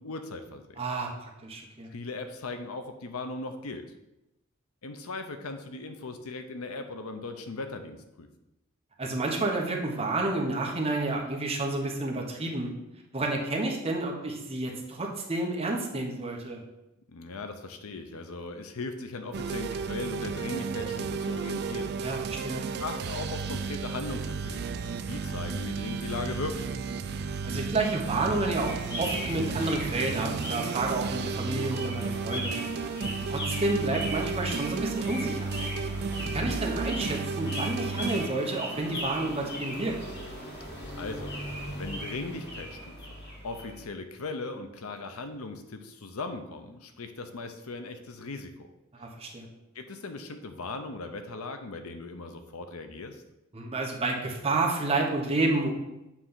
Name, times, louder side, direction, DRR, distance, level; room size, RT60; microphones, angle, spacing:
voice 1, 0.0-0.7 1.9-3.9 4.8-8.3 17.1-21.9 22.8-24.8 25.1-26.8 41.0-41.4 41.8-43.0 43.4-48.7 49.7-53.2, left 3 dB, 85° left, 7 dB, 0.7 m, -38 dB
voice 2, 0.8-1.9 9.0-12.7 13.1-16.6 22.0-22.6 27.4-32.5 33.3-35.7 36.3-40.0 49.0-49.5 53.5-55.7, right 2 dB, 30° right, 0 dB, 1.1 m, -30 dB
sound 1, 19.3-38.3, right 5 dB, 50° right, 0.4 m, -33 dB
sound 2, 28.6-43.9, equal, 50° left, 1.8 m, -38 dB
7.5 x 3.3 x 5.6 m, 0.93 s
head